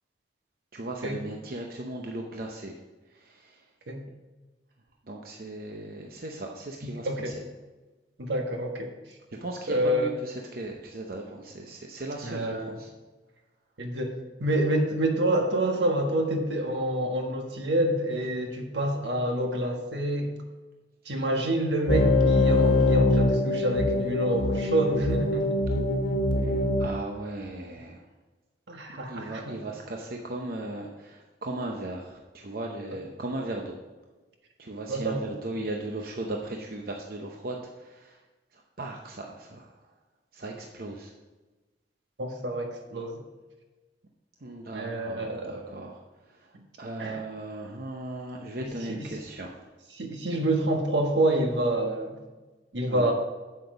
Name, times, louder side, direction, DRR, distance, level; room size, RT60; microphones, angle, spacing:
voice 1, 0.7-2.8 3.1-3.5 5.1-7.3 9.3-12.9 26.8-28.0 28.9-33.8 34.6-38.2 38.5-39.7 40.3-41.1 44.4-46.0 46.8-49.5 52.9-53.1, right 2 dB, 55° right, 1 dB, 0.8 m, -37 dB
voice 2, 8.2-8.9 9.7-10.1 12.2-12.8 13.8-20.3 21.0-25.6 28.7-29.6 32.9-33.0 34.9-35.3 42.2-43.2 44.7-45.7 47.0-47.2 48.6-49.1 49.9-52.2 52.7-53.1, right 1 dB, 80° right, 3 dB, 1.4 m, -27 dB
sound 1, 21.9-26.9, left 2 dB, 85° left, 1.5 m, -23 dB
7.9 x 7.5 x 4.9 m, 1.2 s
head